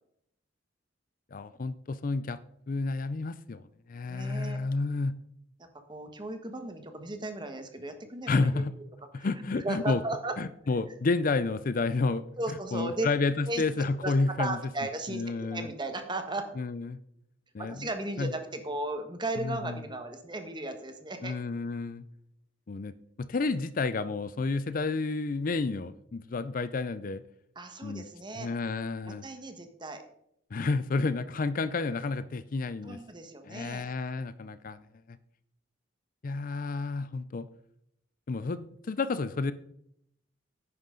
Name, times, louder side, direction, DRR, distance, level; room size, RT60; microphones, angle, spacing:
voice 1, 1.3-2.4 2.7-3.6 3.9-5.2 8.3-8.7 9.1-10.0 10.4-12.2 12.7-14.6 15.1-15.7 16.6-17.0 17.5-17.9 18.2-18.3 19.4-19.8 21.2-22.0 22.7-27.2 27.8-28.0 28.3-29.3 30.5-33.0 33.4-34.8 35.1-35.2 36.2-37.5 38.3-39.5, left 3 dB, 45° left, 14 dB, 0.5 m, -30 dB
voice 2, 4.1-4.6 5.6-8.6 9.1-9.3 9.6-10.3 12.4-13.1 13.5-13.6 14.0-16.5 17.6-21.3 27.5-28.5 29.0-30.0 32.8-33.9, right 2 dB, 25° right, 7 dB, 1.3 m, -36 dB
10.5 x 9.6 x 3.8 m, 0.73 s
head